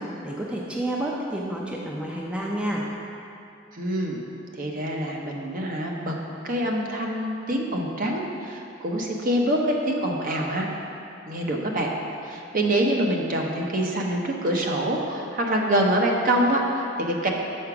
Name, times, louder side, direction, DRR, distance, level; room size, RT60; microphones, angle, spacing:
voice 1, 0.0-2.8, right 1 dB, 5° right, -3 dB, 0.5 m, -29 dB
voice 2, 3.7-4.2 4.5-6.2 6.4-10.7 11.3-11.9 12.2-17.3, right 1 dB, 45° right, 0 dB, 0.8 m, -25 dB
6.4 x 4.8 x 5.9 m, 2.6 s
head